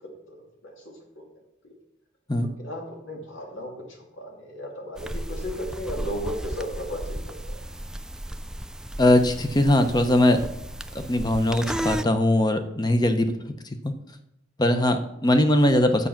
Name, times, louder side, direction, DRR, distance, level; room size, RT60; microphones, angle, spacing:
voice 1, 0.0-1.3 1.6-1.7 2.6-7.6, equal, 80° left, 0 dB, 2.7 m, -36 dB
sound 1, 5.0-12.0, equal, 5° right, 0.3 m, -34 dB
voice 2, 9.0-10.4 10.9-13.3 13.8-13.9 14.6-16.1, left 1 dB, 20° left, 8 dB, 0.9 m, -20 dB
9.7 x 7.6 x 5.9 m, 0.87 s
head